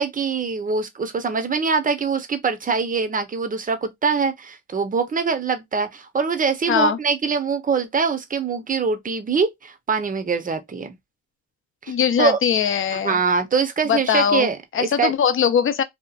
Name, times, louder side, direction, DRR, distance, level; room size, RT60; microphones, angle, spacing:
voice 1, 0.0-10.9 11.8-11.9 12.2-12.4 12.9-15.1, right 5 dB, 25° right, 0.7 m, -23 dB
voice 2, 6.7-7.0 11.9-13.2 13.9-15.8, left 8 dB, 45° left, 0.6 m, -21 dB
2.8 x 2.4 x 2.4 m
cardioid pair, 90°, 30 cm